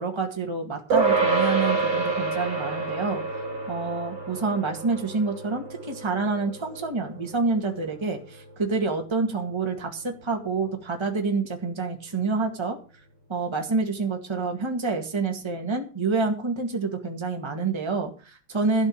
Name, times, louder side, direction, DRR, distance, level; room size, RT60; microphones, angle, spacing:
voice 1, 0.0-3.2 3.7-12.8 13.3-18.9, right 4 dB, 15° right, 3 dB, 1.8 m, -27 dB
sound 1, 0.9-10.6, right 4 dB, 50° right, 4.0 m, -29 dB
13.0 x 5.4 x 8.9 m, 0.37 s
omnidirectional pair, 2.4 m